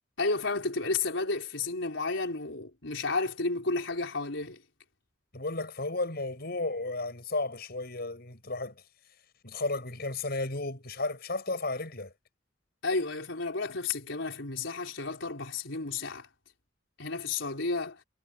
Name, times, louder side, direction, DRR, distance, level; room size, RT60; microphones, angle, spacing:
voice 1, 0.2-4.6 12.8-16.3 17.0-18.0, left 3 dB, 90° left, 4.1 m, -32 dB
voice 2, 5.3-8.8 9.4-12.1, left 2 dB, 55° left, 6.4 m, -33 dB
head